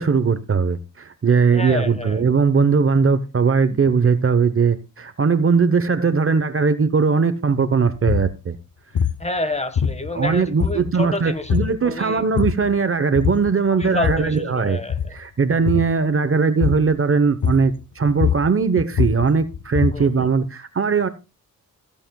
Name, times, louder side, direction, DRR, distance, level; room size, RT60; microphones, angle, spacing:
voice 1, 0.0-8.6 10.1-14.8 15.1-21.1, right 5 dB, 40° right, 1.0 m, -19 dB
voice 2, 1.5-2.2 3.7-3.8 9.2-12.2 13.7-15.2 19.9-20.3, left 2 dB, 20° left, 1.5 m, -29 dB
sound 1, 8.1-8.3 8.9-9.2 9.7-10.3 10.6-11.1 11.5-11.8 12.2-12.7 13.1-13.5 13.8-14.4 14.8-15.2 15.6-16.0 16.6-16.9 17.4-17.8 18.1-20.1, left 7 dB, 60° left, 0.8 m, -23 dB
15.5 x 8.7 x 2.3 m
cardioid pair, 75°, 34 cm